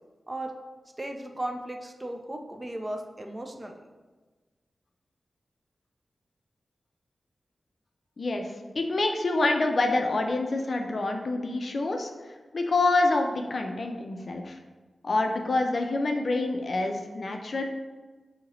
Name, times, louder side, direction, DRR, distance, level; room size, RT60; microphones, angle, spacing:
voice 1, 1.0-3.8, right 1 dB, 15° right, 3 dB, 0.4 m, -36 dB
voice 2, 8.2-8.5 8.8-12.1 12.5-14.6 15.0-17.6, left 2 dB, 50° left, 4 dB, 0.4 m, -26 dB
5.2 x 2.8 x 2.9 m, 1.3 s
wide cardioid pair, 120°, 0 cm